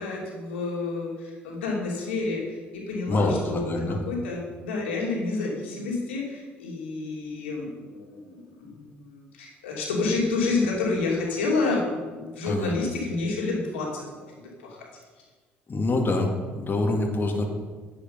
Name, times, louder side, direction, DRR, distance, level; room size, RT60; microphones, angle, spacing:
voice 1, 0.0-14.8, left 3 dB, 85° left, -2 dB, 2.9 m, -29 dB
voice 2, 3.1-4.0 12.4-12.7 15.7-17.5, left 2 dB, 35° left, 1 dB, 2.3 m, -25 dB
10.0 x 9.8 x 5.5 m, 1.4 s
hypercardioid pair, 55°, 6 cm